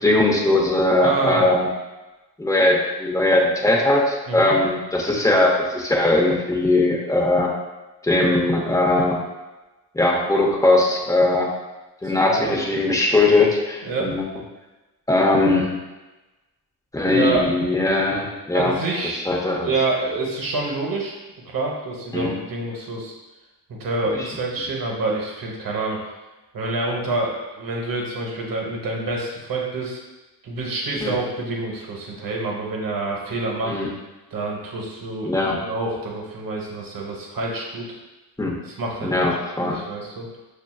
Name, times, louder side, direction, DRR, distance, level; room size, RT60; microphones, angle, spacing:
voice 1, 0.0-1.7 2.4-7.5 8.0-9.2 9.9-11.5 12.0-14.2 15.1-15.8 16.9-18.7 19.3-19.7 22.1-22.4 24.2-24.3 31.0-31.1 33.6-33.9 35.2-35.6 38.4-38.5 39.0-39.8, left 2 dB, 10° left, -2 dB, 0.9 m, -20 dB
voice 2, 1.0-1.4 4.3-4.6 12.0-12.6 13.8-14.2 17.1-17.5 18.5-19.2 19.6-21.1 21.5-23.1 23.8-26.0 26.5-30.0 30.4-33.8 34.3-37.9 38.6-39.3 39.6-40.3, right 2 dB, 55° right, -2 dB, 1.1 m, -27 dB
6.1 x 2.6 x 2.4 m, 1.1 s
cardioid pair, 80°, 40 cm